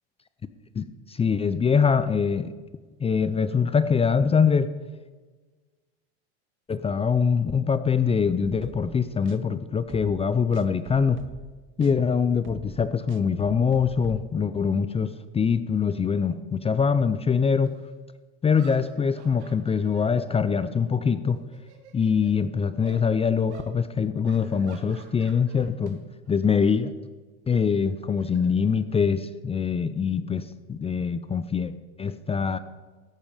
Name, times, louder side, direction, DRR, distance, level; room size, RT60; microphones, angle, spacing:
voice 1, 0.8-2.5 3.0-4.7 6.7-11.2 11.8-17.7 18.4-21.4 21.9-26.9 27.5-32.6, left 6 dB, 20° left, 13 dB, 0.5 m, -24 dB
sound 1, 8.4-9.0 9.3-9.4 9.8-10.2 10.5-11.5 11.8-11.9 12.3-14.2, right 9 dB, 35° right, 1.0 m, -43 dB
sound 2, 17.6-17.7 18.4-21.1 21.4-22.4 22.8-23.1 23.5-23.7 24.2-26.0 26.3-26.5 27.7-29.2, right 6 dB, 85° right, 2.2 m, -51 dB
14.0 x 10.0 x 5.0 m, 1.4 s
supercardioid pair, 105°, 33 cm